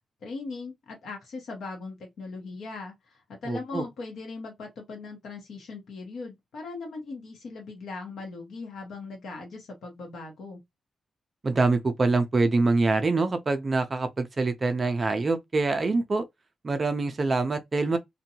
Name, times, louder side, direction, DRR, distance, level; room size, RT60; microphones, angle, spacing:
voice 1, 0.2-10.6, left 3 dB, 70° left, 0.8 m, -39 dB
voice 2, 3.5-3.9 11.4-16.2 16.6-18.0, right 3 dB, 25° right, 0.4 m, -25 dB
2.7 x 2.1 x 2.7 m
wide cardioid pair, 165°, 0 cm